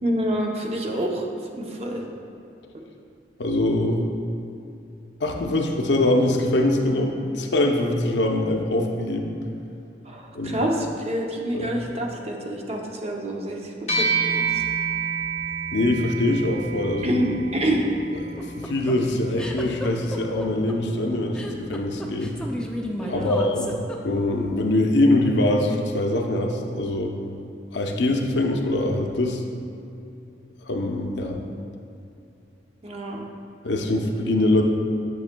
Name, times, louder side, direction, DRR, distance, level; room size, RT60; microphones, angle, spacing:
voice 1, 0.0-1.3 1.5-2.0 10.1-14.5 17.0-17.8 23.0-23.4 32.8-33.2, right 1 dB, 35° right, 0 dB, 0.6 m, -27 dB
voice 2, 3.4-4.0 5.2-9.4 10.3-10.6 11.5-11.7 15.7-17.2 18.1-22.4 23.1-23.7 24.0-27.1 27.7-29.4 30.7-31.4 33.6-34.6, left 1 dB, 75° left, 2 dB, 0.6 m, -23 dB
sound 1, 13.9-23.5, right 5 dB, 35° left, 1.0 m, -31 dB
sound 2, 18.1-24.4, left 1 dB, 5° left, 0.4 m, -34 dB
8.6 x 6.3 x 2.2 m, 2.7 s
head